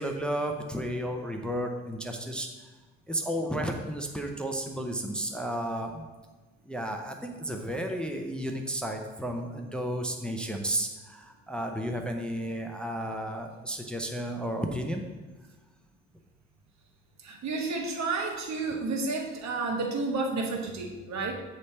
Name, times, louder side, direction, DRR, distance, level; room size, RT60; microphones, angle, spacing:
voice 1, 0.0-2.5 3.1-6.0 6.7-15.0, right 1 dB, 5° left, 3 dB, 0.6 m, -33 dB
voice 2, 17.2-21.3, right 3 dB, 65° right, 2 dB, 1.2 m, -31 dB
8.1 x 3.3 x 4.2 m, 1.2 s
cardioid pair, 90°, 30 cm